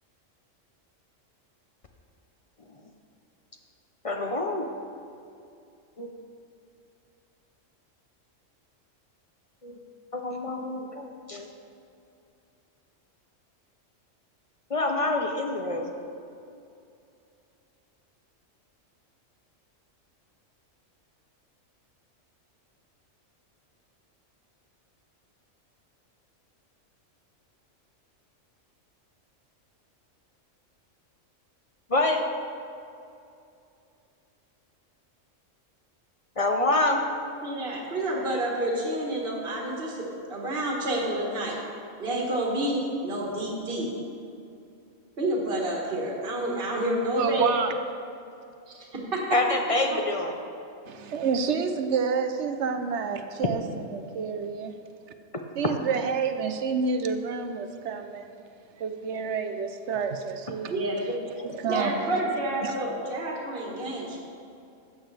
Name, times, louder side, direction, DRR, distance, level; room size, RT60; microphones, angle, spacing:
voice 1, 4.0-4.7 6.0-6.1 9.6-9.8 10.1-11.5 14.7-15.9 31.9-32.2 36.4-37.0 49.3-50.3, left 2 dB, 35° left, 3 dB, 0.6 m, -26 dB
voice 2, 37.4-41.6 42.0-43.9 45.2-47.5 48.7-48.8 49.1-49.2 49.9-50.0 60.7-61.2 61.7-64.2, right 1 dB, 45° right, -3 dB, 1.7 m, -29 dB
voice 3, 47.2-47.7 50.9-54.7 55.6-58.3 58.8-60.7 61.4-61.9 62.6-62.8, right 5 dB, 65° right, 7 dB, 0.9 m, -29 dB
13.5 x 8.5 x 3.4 m, 2.6 s
omnidirectional pair, 1.3 m